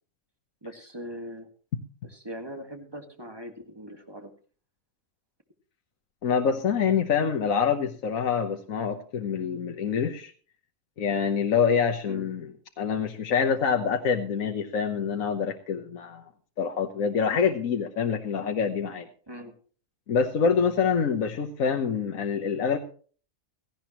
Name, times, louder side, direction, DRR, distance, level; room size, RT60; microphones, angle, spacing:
voice 1, 0.6-1.5 2.1-4.3 12.1-12.2 19.3-19.5, equal, 20° right, 4 dB, 1.8 m, -40 dB
voice 2, 6.2-10.3 11.0-16.2 16.6-19.1 20.1-22.8, left 6 dB, 80° left, 4 dB, 1.5 m, -26 dB
17.5 x 15.0 x 3.0 m, 0.41 s
omnidirectional pair, 1.4 m